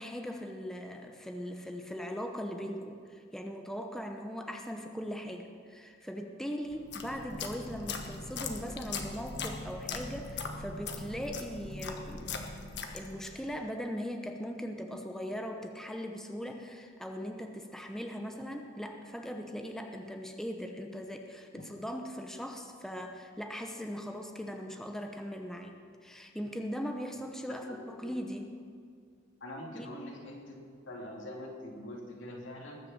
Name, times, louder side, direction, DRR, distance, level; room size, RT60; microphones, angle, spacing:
voice 1, 0.0-12.4 12.9-28.5 29.7-29.9, equal, 5° left, 3 dB, 0.8 m, -39 dB
sound 1, 6.7-13.4, left 4 dB, 65° left, 1.3 m, -40 dB
voice 2, 29.4-30.6 30.8-32.8, left 1 dB, 80° left, -1 dB, 2.7 m, -43 dB
20.5 x 6.8 x 7.3 m, 2.2 s
head